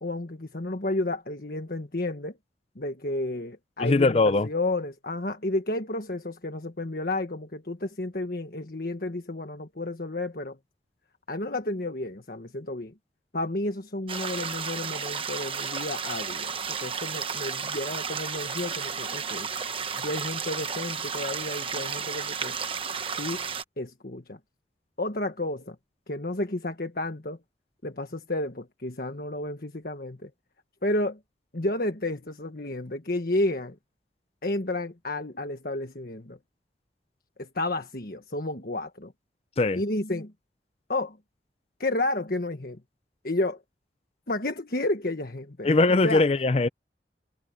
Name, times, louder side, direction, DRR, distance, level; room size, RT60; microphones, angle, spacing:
voice 1, 0.0-2.4 2.7-10.6 11.3-12.9 13.3-19.5 20.0-22.6 23.2-23.5 23.8-24.4 25.0-25.7 26.1-27.4 27.8-30.3 30.8-31.2 31.5-33.8 34.4-36.4 37.4-39.1 39.7-40.3 40.9-41.2 41.8-42.8 43.2-43.6 44.3-45.7 46.0-46.2, left 2 dB, 55° left, 1.5 m, -31 dB
voice 2, 3.8-4.5 39.6-39.8 45.6-46.7, left 3 dB, 35° left, 0.5 m, -21 dB
sound 1, 14.1-23.6, right 6 dB, 30° right, 1.2 m, -33 dB
head